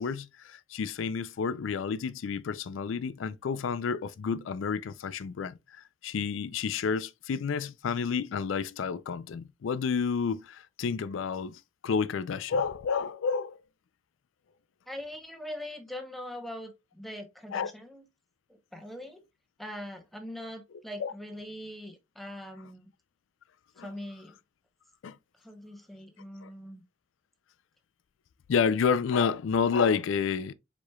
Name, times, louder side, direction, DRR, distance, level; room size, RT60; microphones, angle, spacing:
voice 1, 0.0-13.6 17.5-17.7 21.0-21.1 23.8-23.9 25.0-25.2 26.4-26.5 28.5-30.5, left 6 dB, 70° left, 0.4 m, -30 dB
voice 2, 14.9-18.0 18.7-19.2 19.6-22.9 23.8-24.4 25.4-26.8, left 1 dB, ahead, 0.7 m, -42 dB
4.8 x 4.2 x 2.2 m
head